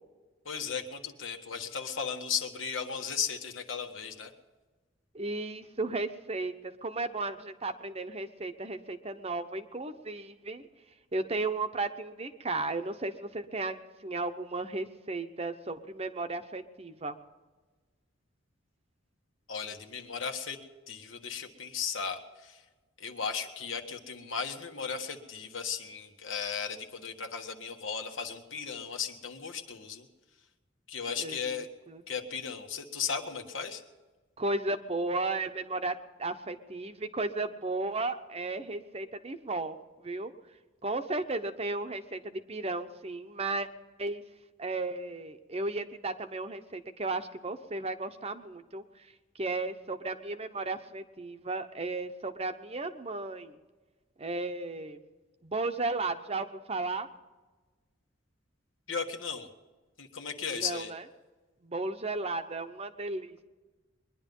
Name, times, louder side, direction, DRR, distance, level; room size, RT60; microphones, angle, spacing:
voice 1, 0.4-4.3 19.5-20.6 20.9-22.6 23.0-30.1 30.9-31.7 32.1-33.8 58.9-59.5 60.0-60.9, left 6 dB, 80° left, 5 dB, 1.5 m, -36 dB
voice 2, 5.1-10.7 11.1-17.2 31.2-32.0 34.4-40.3 40.8-43.7 44.0-44.2 44.6-53.6 54.2-55.0 55.4-57.1 60.5-61.0 61.6-63.4, right 2 dB, 30° right, 8 dB, 0.9 m, -34 dB
22.0 x 11.0 x 5.4 m, 1.3 s
head